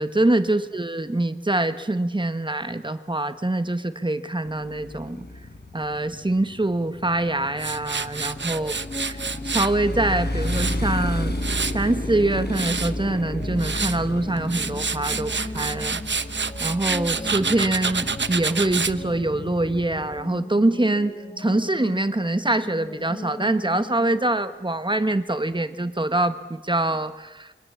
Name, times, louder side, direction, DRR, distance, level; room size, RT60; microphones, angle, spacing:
voice 1, 0.0-5.3 5.7-8.8 9.1-11.3 11.7-16.0 16.6-27.5, right 2 dB, 25° right, 10 dB, 1.3 m, -24 dB
Motorcycle, 4.5-20.2, left 1 dB, 60° left, 4.2 m, -32 dB
Tools, 7.6-9.7 10.2-11.9 12.3-12.9 13.4-14.0 14.4-19.0, right 5 dB, 70° right, 1.0 m, -28 dB
sound 1, 8.2-24.4, left 2 dB, 30° left, 1.7 m, -39 dB
28.0 x 24.5 x 7.3 m, 1.1 s
wide cardioid pair, 65°, 20 cm